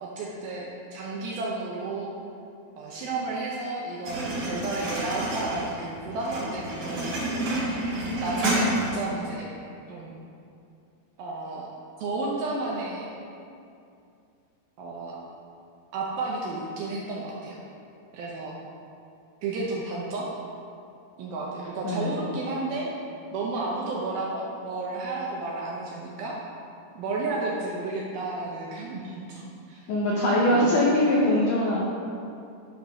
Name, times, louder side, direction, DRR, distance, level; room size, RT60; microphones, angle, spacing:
voice 1, 0.0-2.1 2.8-7.2 8.2-9.5 9.9-10.2 11.2-11.7 12.0-13.1 14.8-15.2 15.9-17.6 18.1-18.6 19.4-20.3 21.2-22.9 23.3-26.4 27.0-29.9 30.5-30.8, right 3 dB, 75° right, -4 dB, 2.3 m, -32 dB
sound 1, 4.0-9.1, right 1 dB, 50° right, 2.4 m, -29 dB
voice 2, 21.8-22.2 29.9-31.9, left 1 dB, 85° left, -4 dB, 1.8 m, -22 dB
11.5 x 3.9 x 5.2 m, 2.5 s
omnidirectional pair, 5.1 m